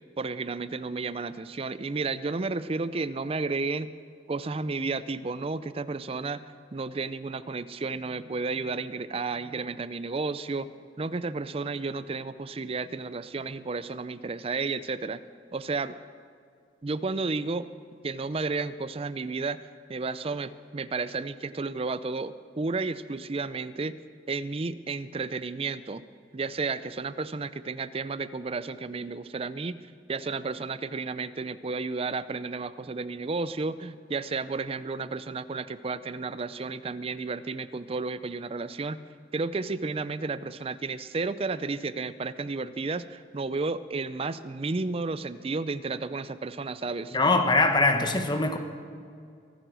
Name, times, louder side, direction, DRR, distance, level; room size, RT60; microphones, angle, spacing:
voice 1, 0.2-3.9 4.3-10.7 11.0-15.2 15.5-16.0 16.8-17.7 18.0-19.6 19.9-24.0 24.3-26.1 26.3-29.8 30.1-39.0 39.3-47.2, right 3 dB, 35° right, 15 dB, 0.5 m, -32 dB
voice 2, 47.1-48.6, left 3 dB, 25° left, 6 dB, 1.1 m, -22 dB
23.5 x 8.0 x 6.2 m, 2.3 s
head